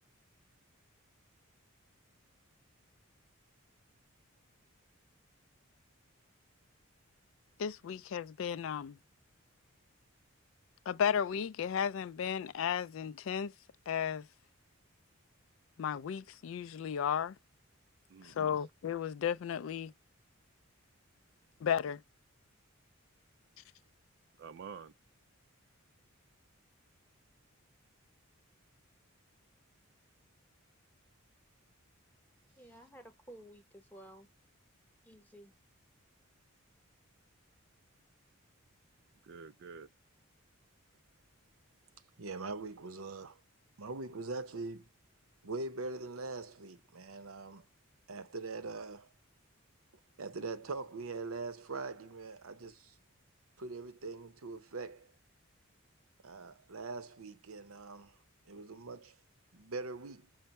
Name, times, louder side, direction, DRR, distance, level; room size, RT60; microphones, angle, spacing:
voice 1, 7.6-8.9 10.9-13.5 13.9-14.2 15.8-17.3 18.2-19.9 21.6-22.0, left 8 dB, 65° left, 0.3 m, -34 dB
voice 2, 18.1-18.7 24.4-24.9 32.5-32.9 39.2-39.9, right 6 dB, 55° right, 0.3 m, -49 dB
voice 3, 32.6-34.3 35.0-35.5, right 1 dB, 10° left, 0.9 m, -54 dB
voice 4, 42.2-43.4 43.8-44.8 45.4-47.7 48.1-49.1 50.2-52.9 53.6-55.1 56.2-58.2 58.5-59.2 59.5-60.3, right 3 dB, 85° right, 0.8 m, -42 dB
5.5 x 2.1 x 4.2 m
head